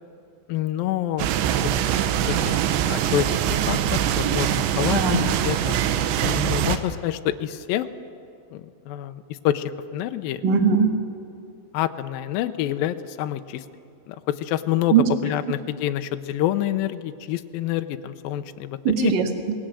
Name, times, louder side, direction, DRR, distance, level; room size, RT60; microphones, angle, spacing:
voice 1, 0.5-1.3 2.3-5.7 6.2-7.9 8.5-10.4 11.7-13.6 14.1-19.1, left 12 dB, 85° left, 9 dB, 2.1 m, -27 dB
sound 1, 1.2-6.8, right 10 dB, 80° right, 3.2 m, -23 dB
voice 2, 4.9-5.2 10.4-11.0 14.9-15.0 18.8-19.5, right 6 dB, 55° right, 5 dB, 1.2 m, -20 dB
28.0 x 20.0 x 7.7 m, 2.5 s
omnidirectional pair, 5.1 m